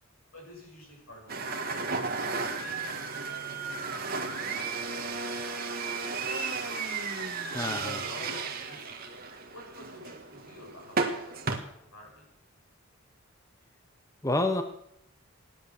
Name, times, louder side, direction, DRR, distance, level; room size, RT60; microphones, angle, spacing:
voice 1, 0.3-2.0 2.5-6.7 8.0-9.0 9.5-11.5 11.8-12.3, left 1 dB, 90° left, -1 dB, 7.0 m, -51 dB
sound 1, 1.3-11.6, right 4 dB, 45° right, 1.7 m, -34 dB
voice 2, 7.5-8.0 14.2-14.6, left 2 dB, 15° left, 8 dB, 0.9 m, -28 dB
16.0 x 10.5 x 7.1 m, 0.77 s
head